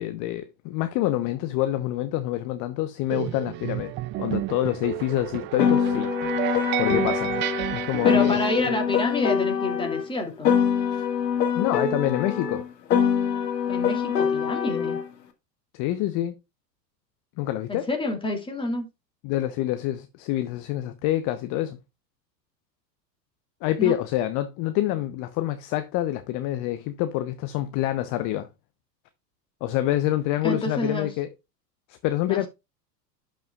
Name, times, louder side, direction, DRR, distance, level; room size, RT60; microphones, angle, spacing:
voice 1, 0.0-3.9 4.2-7.3 7.7-8.4 8.7-8.8 10.9-11.0 11.6-12.7 15.7-16.3 17.4-17.9 19.2-21.8 23.6-28.5 29.6-31.3 31.9-32.5, left 14 dB, 40° left, 0.8 m, -27 dB
sound 1, 3.1-8.6, right 16 dB, 25° right, 0.4 m, -31 dB
Piano, 5.6-10.1 10.4-15.1, left 7 dB, 75° left, 1.9 m, -24 dB
voice 2, 8.0-10.5 13.7-15.0 17.7-18.9 23.8-23.9 30.4-31.1 32.3-32.4, left 2 dB, 10° left, 2.6 m, -28 dB
11.5 x 5.7 x 2.3 m
hypercardioid pair, 95°, 50 cm